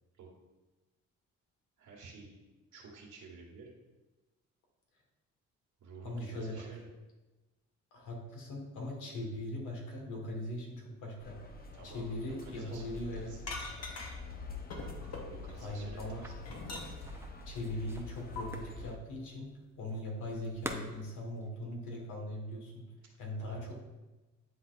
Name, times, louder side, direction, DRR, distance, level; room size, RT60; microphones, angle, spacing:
voice 1, 1.8-2.3 2.7-3.7 5.8-6.9 11.7-13.4 15.1-16.3 23.4-23.7, right 4 dB, 70° right, -3 dB, 1.6 m, -51 dB
voice 2, 6.0-6.7 7.9-11.5 11.8-13.3 15.6-16.2 17.4-19.5 19.8-22.8 23.2-23.7, left 1 dB, 85° left, 0 dB, 1.7 m, -40 dB
sound 1, 11.2-19.0, left 3 dB, 30° left, 0.8 m, -46 dB
sound 2, 13.5-14.3 14.7-15.7 16.1-17.2 18.4-18.5, left 3 dB, 55° left, 1.2 m, -42 dB
sound 3, 16.2-21.5, right 1 dB, 10° right, 0.7 m, -47 dB
9.5 x 4.0 x 2.5 m, 1.1 s
cardioid pair, 90°, 30 cm